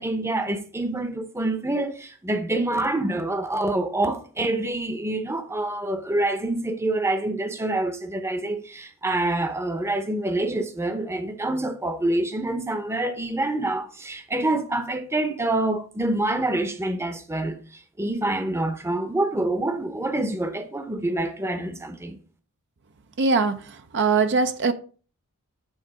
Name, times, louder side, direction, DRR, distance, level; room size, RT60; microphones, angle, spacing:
voice 1, 0.0-22.2, right 2 dB, 10° right, 0.8 m, -26 dB
voice 2, 23.2-23.6 23.9-24.7, right 4 dB, 55° right, 0.6 m, -21 dB
8.9 x 3.7 x 4.9 m
head